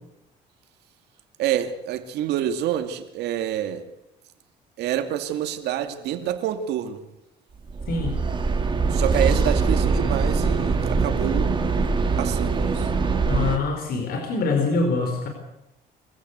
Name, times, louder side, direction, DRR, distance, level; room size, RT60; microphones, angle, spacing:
voice 1, 1.4-3.9 4.8-7.0 8.9-11.6 12.1-12.9, right 10 dB, 80° right, 2.4 m, -27 dB
sound 1, 7.7-13.6, right 4 dB, 30° right, 3.2 m, -22 dB
voice 2, 7.9-8.2 13.3-15.3, left 3 dB, 65° left, 4.7 m, -24 dB
24.0 x 15.5 x 8.2 m
cardioid pair, 110°, 17 cm